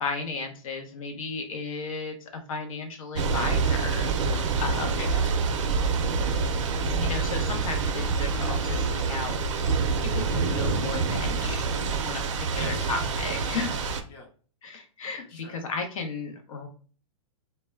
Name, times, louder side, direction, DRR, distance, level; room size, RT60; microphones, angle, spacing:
voice 1, 0.0-5.0 6.9-9.3 10.0-13.9 14.6-16.7, left 4 dB, 75° left, 5 dB, 0.7 m, -34 dB
Thunder / Rain, 3.2-14.0, right 4 dB, 65° right, 0.5 m, -26 dB
voice 2, 4.8-5.7 12.6-12.9 13.2-13.6 13.9-14.3 15.2-15.6, left 4 dB, 25° left, 1 dB, 0.5 m, -42 dB
2.1 x 2.0 x 3.3 m, 0.41 s
hypercardioid pair, 155°, 17 cm